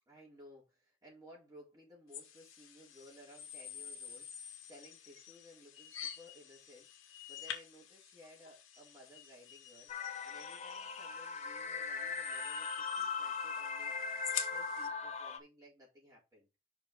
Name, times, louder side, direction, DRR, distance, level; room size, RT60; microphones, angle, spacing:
voice 1, 0.1-14.0 14.5-16.5, equal, 20° right, 4.1 m, -58 dB
sound 1, 2.1-14.9, left 9 dB, 85° left, 1.9 m, -48 dB
sound 2, 9.9-15.4, left 5 dB, 35° left, 0.9 m, -39 dB
6.1 x 5.7 x 5.1 m
head